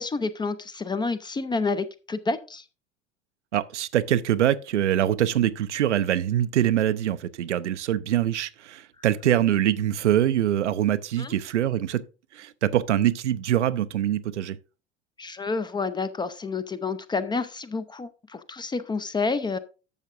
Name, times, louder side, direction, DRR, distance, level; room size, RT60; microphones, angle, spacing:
voice 1, 0.0-2.6 11.2-11.3 15.2-19.6, left 4 dB, 15° left, 0.5 m, -29 dB
voice 2, 3.5-12.0 12.3-14.6, right 11 dB, 75° right, 0.6 m, -24 dB
12.0 x 7.2 x 2.5 m
figure-of-eight pair, 70°, 36 cm